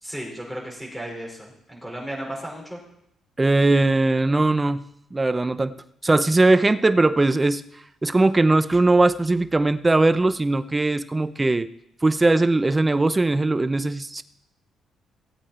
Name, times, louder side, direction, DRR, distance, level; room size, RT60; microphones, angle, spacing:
voice 1, 0.0-2.8, right 1 dB, ahead, -2 dB, 5.0 m, -34 dB
voice 2, 3.4-5.7 6.0-7.6 8.0-11.7 12.0-14.2, right 2 dB, 20° right, 13 dB, 0.7 m, -20 dB
17.0 x 8.6 x 4.3 m, 0.76 s
cardioid pair, 90°, 0 cm